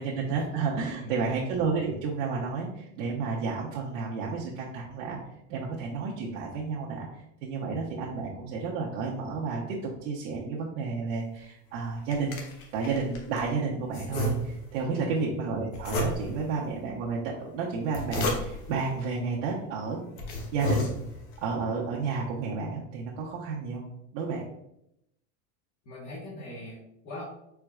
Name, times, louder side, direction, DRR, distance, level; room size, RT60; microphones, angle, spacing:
voice 1, 0.0-5.2 5.5-12.4 12.7-20.0 20.5-20.9 21.4-23.8 24.1-24.4, right 4 dB, 85° right, -4 dB, 1.0 m, -31 dB
voice 2, 0.9-1.3 14.9-15.2 25.8-27.2, left 1 dB, 45° left, -7 dB, 1.3 m, -42 dB
sound 1, 11.7-13.5 13.9-14.8 15.7-16.5 17.7-18.8 19.5-19.6 20.0-21.4, left 1 dB, 85° left, 1.3 m, -32 dB
4.6 x 4.3 x 2.3 m, 0.80 s
supercardioid pair, 145°, 38 cm